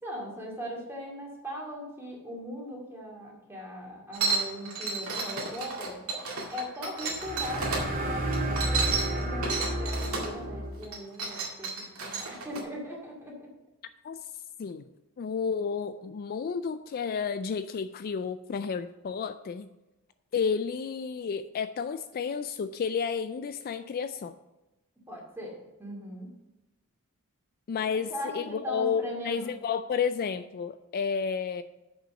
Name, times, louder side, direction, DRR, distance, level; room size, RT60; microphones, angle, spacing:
voice 1, 0.0-6.0 6.5-11.7 12.0-13.5 25.1-26.4 28.1-29.6, equal, 10° right, -2 dB, 2.3 m, -39 dB
sound 1, 4.1-7.8 8.3-10.3 10.8-12.6, right 4 dB, 75° right, 2.1 m, -32 dB
sound 2, 7.1-10.9, right 1 dB, 40° right, 2.2 m, -31 dB
voice 2, 15.2-19.7 20.3-24.4 27.7-31.6, left 6 dB, 45° left, 11 dB, 0.3 m, -31 dB
7.0 x 5.5 x 6.9 m, 1.0 s
head